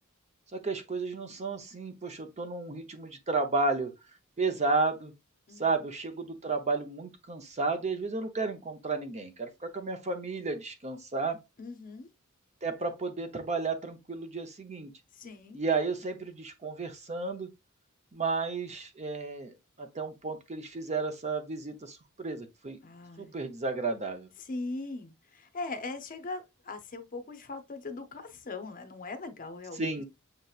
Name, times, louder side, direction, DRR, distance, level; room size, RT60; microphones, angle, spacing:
voice 1, 0.5-3.9 4.4-5.1 5.6-11.4 12.6-14.9 15.5-17.5 18.1-22.8 23.2-24.3 29.8-30.0, right 3 dB, 30° right, 0.7 m, -32 dB
voice 2, 5.5-5.8 11.6-12.1 15.1-15.6 22.8-23.3 24.4-29.9, left 3 dB, 40° left, 0.6 m, -40 dB
6.5 x 2.9 x 2.3 m
head